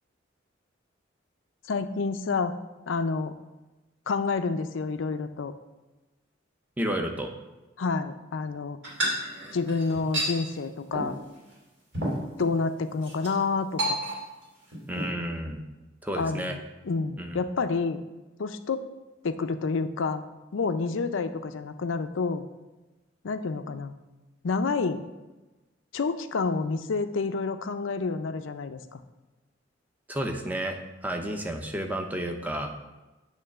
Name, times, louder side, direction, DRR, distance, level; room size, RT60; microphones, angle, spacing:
voice 1, 1.7-2.5 2.9-3.3 4.1-5.5 7.8-8.8 9.5-11.2 12.4-14.0 16.2-18.0 18.4-18.8 19.2-20.2 20.5-22.4 23.2-23.9 24.4-25.0 25.9-29.0, left 4 dB, 90° left, 9 dB, 0.5 m, -29 dB
voice 2, 6.8-7.3 14.9-15.6 16.0-16.6 17.2-17.4 30.1-32.8, right 1 dB, 10° right, 4 dB, 0.7 m, -31 dB
sound 1, 8.8-10.3 10.9-11.2 11.5-11.6 11.9-12.5 13.0-13.3 13.8-14.4 14.7-15.1, right 1 dB, 65° right, 2.8 m, -30 dB
8.8 x 3.2 x 6.5 m, 1.1 s
head